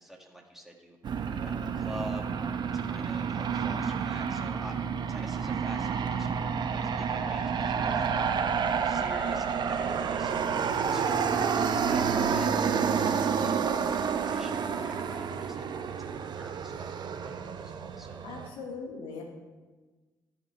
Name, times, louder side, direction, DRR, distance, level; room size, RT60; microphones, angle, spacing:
voice 1, 0.0-2.3 2.7-4.8 5.1-8.3 8.8-10.4 10.9-12.6 13.0-13.6 13.9-18.3, equal, 5° right, 0 dB, 1.9 m, -47 dB
Aircraft, 1.0-18.5, right 6 dB, 55° right, 0.8 m, -29 dB
voice 2, 10.8-11.2 18.2-19.2, left 4 dB, 75° left, 2 dB, 1.3 m, -40 dB
13.0 x 5.1 x 4.4 m, 1.3 s
hypercardioid pair, 50°, 9 cm